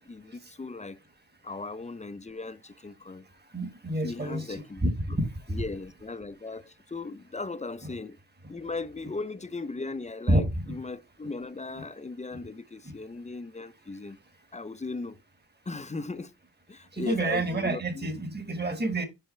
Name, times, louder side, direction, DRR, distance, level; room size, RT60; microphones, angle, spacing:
voice 1, 0.1-1.0 1.4-3.3 4.0-5.2 5.5-8.2 8.5-14.2 14.5-15.2 15.7-16.3 16.7-18.1, left 3 dB, 20° left, 0.6 m, -37 dB
voice 2, 3.5-4.9 5.2-5.6 10.3-10.8 12.8-12.9 16.9-19.1, right 1 dB, 30° right, 1.5 m, -28 dB
5.6 x 4.9 x 4.3 m
cardioid pair, 60°, 35 cm